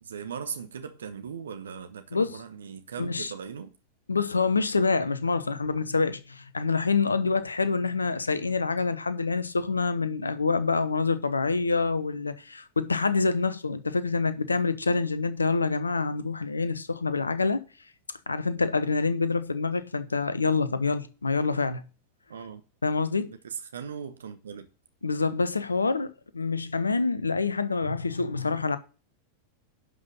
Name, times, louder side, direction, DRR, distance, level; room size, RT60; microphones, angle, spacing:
voice 1, 0.0-3.7 22.3-22.6 23.2-24.7, right 7 dB, 65° right, 0.9 m, -39 dB
voice 2, 3.0-3.3 4.1-17.6 18.3-21.8 22.8-23.3 25.0-28.8, left 4 dB, 80° left, 0.9 m, -26 dB
11.5 x 5.6 x 6.0 m
figure-of-eight pair, 90°, 0 cm